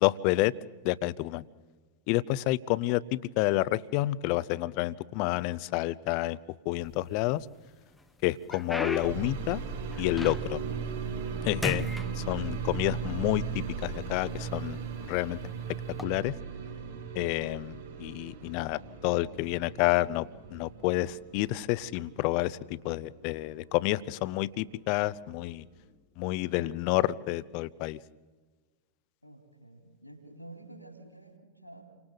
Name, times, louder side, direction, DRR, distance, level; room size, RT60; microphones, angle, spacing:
voice 1, 0.0-0.5 0.8-1.4 2.1-6.4 6.6-7.5 8.2-9.6 10.0-10.6 11.4-14.8 15.1-15.4 16.0-16.3 17.1-25.7 26.2-28.0, left 17 dB, 45° left, 20 dB, 0.7 m, -29 dB
sound 1, 6.7-7.5 8.0-10.7 11.1-11.4 11.6-12.9 13.7-13.8 14.5-14.7 15.8-16.0, left 2 dB, 5° left, 0.9 m, -38 dB
sound 2, 9.0-24.8 25.1-25.9, right 6 dB, 60° right, 8.0 m, -38 dB
voice 2, 29.2-31.8, right 1 dB, 90° left, 5 dB, 3.7 m, -49 dB
29.5 x 25.0 x 4.0 m, 1.3 s
figure-of-eight pair, 90°, 0 cm